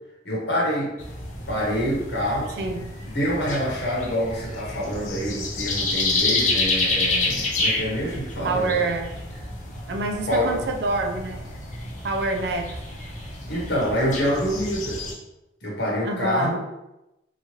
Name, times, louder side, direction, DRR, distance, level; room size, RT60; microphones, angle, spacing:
voice 1, 0.2-0.9 1.5-2.5 3.0-8.8 10.3-10.5 13.5-15.0 15.6-16.6, equal, 70° left, -4 dB, 0.9 m, -26 dB
sound 1, 1.0-15.1, left 2 dB, 40° left, 0.5 m, -29 dB
voice 2, 2.6-2.9 8.4-9.2 9.9-11.4 12.0-12.8 16.0-16.6, right 3 dB, 65° right, 4 dB, 0.4 m, -26 dB
2.8 x 2.3 x 2.9 m, 0.93 s
head